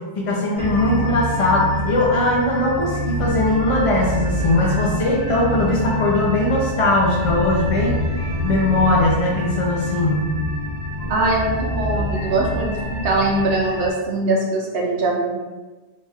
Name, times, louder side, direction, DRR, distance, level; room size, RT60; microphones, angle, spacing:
voice 1, 0.2-8.0 8.4-10.3, left 2 dB, 50° left, -4 dB, 0.4 m, -20 dB
sound 1, 0.5-13.9, equal, 90° left, 1.5 m, -26 dB
voice 2, 11.1-12.8 13.0-15.4, right 2 dB, 70° right, -2 dB, 0.8 m, -21 dB
4.5 x 2.3 x 2.7 m, 1.2 s
omnidirectional pair, 1.1 m